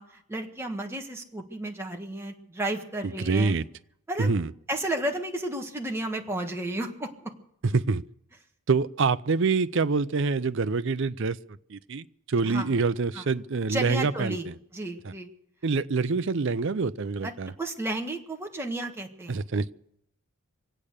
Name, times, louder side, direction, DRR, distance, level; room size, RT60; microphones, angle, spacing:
voice 1, 0.0-3.5 4.1-4.3 4.7-7.3 12.4-12.7 13.1-13.2 13.7-14.5 14.7-15.3 17.2-17.3 17.6-19.4, right 1 dB, 10° right, 2 dB, 1.5 m, -32 dB
voice 2, 3.0-3.6 4.2-4.5 7.6-8.0 8.7-11.4 11.7-14.4 15.0-15.1 15.6-17.5 19.3-19.7, right 4 dB, 55° right, 14 dB, 0.5 m, -26 dB
24.5 x 8.7 x 6.6 m, 0.74 s
head